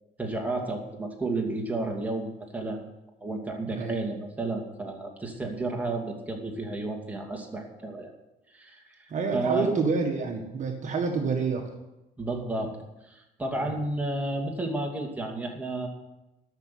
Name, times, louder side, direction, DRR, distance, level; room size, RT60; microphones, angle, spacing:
voice 1, 0.2-2.9 3.2-8.1 8.5-9.7 12.2-15.9, right 2 dB, 10° right, 1 dB, 2.6 m, -32 dB
voice 2, 3.7-4.0 9.1-11.6 13.6-13.7, right 4 dB, 45° right, 2 dB, 1.7 m, -28 dB
13.0 x 6.3 x 9.4 m, 0.97 s
cardioid pair, 110°, 17 cm